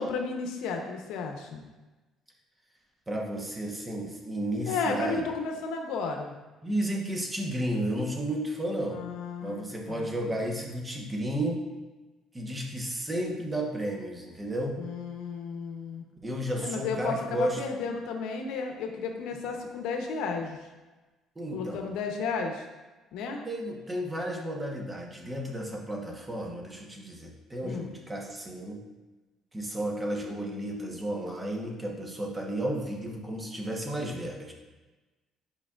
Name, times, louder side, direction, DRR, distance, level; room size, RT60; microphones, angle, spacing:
voice 1, 0.0-1.6 4.7-6.3 8.9-10.1 14.8-16.0 16.6-20.6 21.5-22.7 23.1-23.4 27.6-27.9, left 4 dB, 85° left, 3 dB, 0.9 m, -33 dB
voice 2, 3.1-5.2 6.6-9.0 9.4-11.7 12.3-14.8 16.2-17.6 21.4-21.8 23.5-28.8 29.5-34.5, right 1 dB, 15° right, 0 dB, 1.1 m, -32 dB
8.6 x 5.2 x 2.5 m, 1.2 s
cardioid pair, 135°, 0 cm